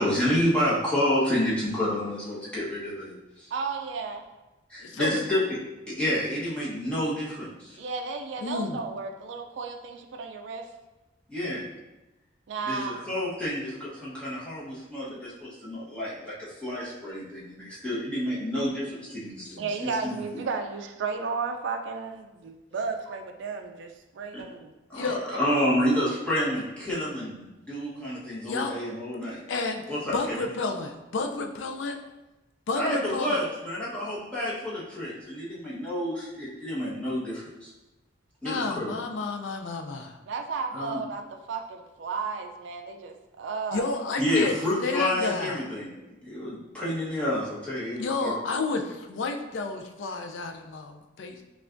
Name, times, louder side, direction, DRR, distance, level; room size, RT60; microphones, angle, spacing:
voice 1, 0.0-3.5 4.7-5.6 5.9-7.8 11.3-11.7 12.6-20.2 24.9-29.4 29.9-30.4 32.8-37.7 38.4-38.9 40.7-41.0 44.2-45.9 46.2-48.4, left 1 dB, 5° left, -10 dB, 1.1 m, -29 dB
voice 2, 3.5-4.2 7.8-10.7 12.5-13.0 19.6-24.7 25.4-25.6 40.3-43.9, right 4 dB, 75° right, 4 dB, 0.3 m, -33 dB
voice 3, 4.8-5.2 8.4-8.8 19.5-19.6 24.9-25.2 28.4-28.8 29.5-29.8 30.1-32.0 32.7-33.4 38.4-40.2 43.7-44.6 44.8-45.6 48.0-51.4, left 3 dB, 80° left, 5 dB, 0.4 m, -31 dB
5.6 x 2.4 x 2.5 m, 1.0 s
head